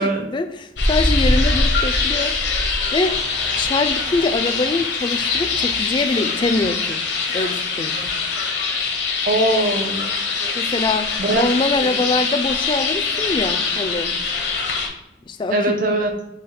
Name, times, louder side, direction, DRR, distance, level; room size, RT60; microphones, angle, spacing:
voice 1, 0.3-2.3 2.9-3.1 3.6-7.0 7.3-8.1 10.6-14.1 15.3-15.6, left 3 dB, 25° left, 8 dB, 0.3 m, -23 dB
sound 1, 0.8-14.9, left 4 dB, 70° left, 0.9 m, -22 dB
Domestic sounds home sounds, 3.0-6.8 7.1-8.1, equal, 75° right, 1.3 m, -40 dB
voice 2, 9.3-10.1 11.2-11.4 11.8-12.0 15.5-16.1, right 2 dB, 50° right, 4 dB, 0.7 m, -20 dB
5.0 x 2.3 x 4.2 m, 0.87 s
head